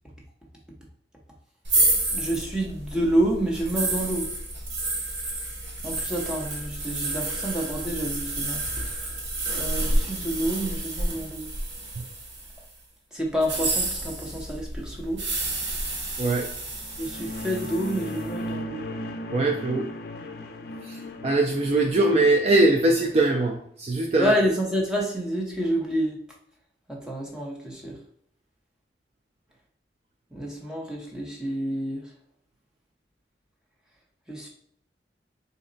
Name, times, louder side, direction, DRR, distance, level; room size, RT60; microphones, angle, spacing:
sound 1, 1.6-12.6 13.4-18.2, right 2 dB, 80° right, 0.9 m, -30 dB
voice 1, 2.1-4.3 5.8-8.6 9.5-11.5 13.1-15.2 17.0-18.8 24.2-26.2 26.9-27.9 30.3-32.0 34.3-34.5, right 1 dB, 5° right, -3 dB, 0.7 m, -28 dB
sound 2, 16.8-23.4, left 1 dB, 55° left, 0.4 m, -37 dB
voice 2, 19.3-19.9 20.9-21.0 21.2-24.3, right 2 dB, 35° right, 2 dB, 0.3 m, -21 dB
3.9 x 2.1 x 3.8 m, 0.64 s
head